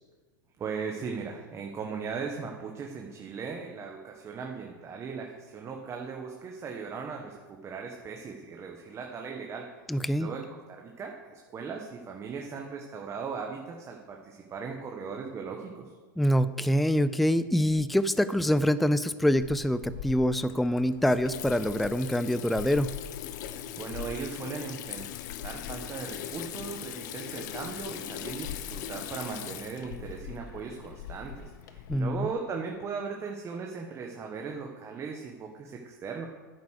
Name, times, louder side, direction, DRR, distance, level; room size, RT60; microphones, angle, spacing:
voice 1, 0.6-9.7 10.2-15.9 23.8-25.1 25.4-36.3, right 5 dB, 25° right, 1 dB, 1.3 m, -38 dB
voice 2, 9.9-10.3 16.2-22.9 31.9-32.3, equal, ahead, 14 dB, 0.4 m, -25 dB
Water tap faucet / Sink (filling or washing), 19.4-32.0, left 10 dB, 65° left, 0.9 m, -40 dB
9.4 x 9.3 x 6.5 m, 1.4 s
hypercardioid pair, 120°, 11 cm